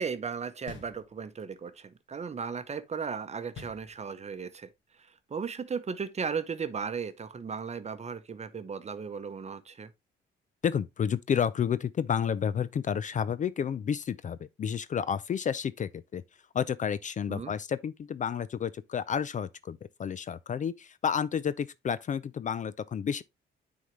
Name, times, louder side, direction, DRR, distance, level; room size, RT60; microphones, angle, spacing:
voice 1, 0.0-4.7 5.3-9.9 17.3-17.5, right 6 dB, 35° right, 0.8 m, -36 dB
sound 1, 0.7-1.6 3.5-4.5, left 5 dB, 75° left, 1.6 m, -48 dB
voice 2, 10.6-16.2 16.5-23.2, left 7 dB, 40° left, 0.4 m, -31 dB
9.1 x 4.0 x 3.1 m
cardioid pair, 90°, 20 cm